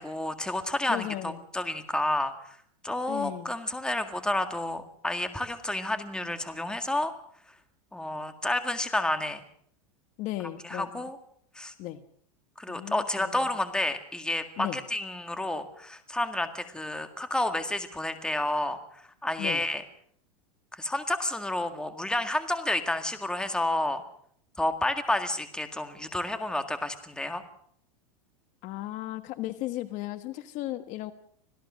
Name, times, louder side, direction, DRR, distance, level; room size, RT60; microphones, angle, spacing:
voice 1, 0.0-2.6 2.8-7.1 7.9-9.4 10.6-11.2 11.6-11.7 12.6-18.8 19.2-19.8 20.7-24.0 24.6-27.4, left 1 dB, 5° left, 8 dB, 1.9 m, -30 dB
voice 2, 0.9-1.4 3.1-3.5 10.2-11.0 11.8-12.0 12.7-13.4 14.6-14.8 19.4-19.6 28.6-31.1, left 15 dB, 45° left, 11 dB, 1.3 m, -35 dB
26.0 x 17.0 x 6.4 m, 0.64 s
supercardioid pair, 145°, 19 cm